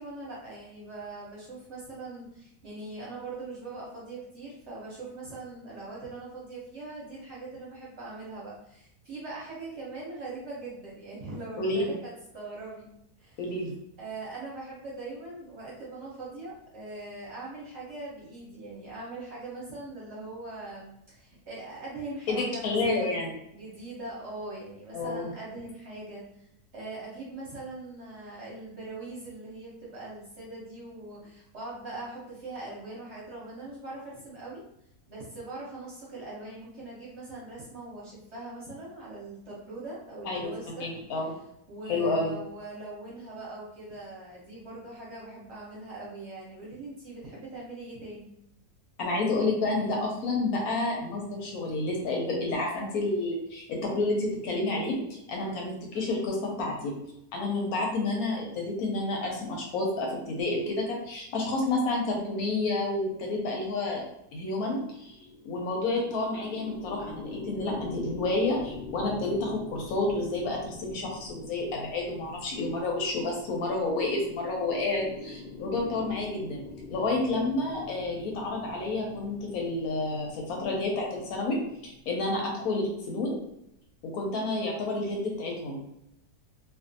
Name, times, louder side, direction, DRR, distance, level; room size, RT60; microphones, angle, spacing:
voice 1, 0.0-12.9 13.2-13.4 14.0-23.2 23.5-26.5 26.7-34.6 35.1-40.9 41.7-48.3 55.4-55.7, right 2 dB, 55° right, -6 dB, 0.8 m, -41 dB
voice 2, 13.4-13.7 22.3-23.3 24.9-25.3 40.2-40.5 40.8-41.3 41.9-42.3 49.0-57.0 57.3-64.0 64.3-65.2 65.4-76.6 76.9-83.4 84.0-85.8, left 2 dB, 75° left, -1 dB, 1.0 m, -30 dB
sound 1, 64.9-82.4, left 3 dB, 50° left, 0.6 m, -44 dB
2.5 x 2.3 x 2.5 m, 0.80 s
omnidirectional pair, 1.7 m